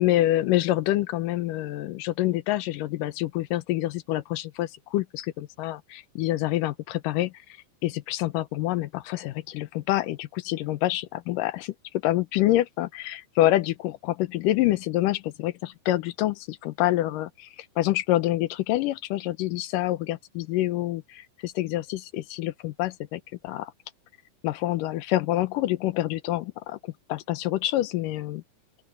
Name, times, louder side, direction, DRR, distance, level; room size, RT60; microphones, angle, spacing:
voice 1, 0.0-7.3 7.8-11.7 12.0-23.7 24.4-28.4, left 15 dB, 75° left, 2.3 m, -27 dB
open air
omnidirectional pair, 4.2 m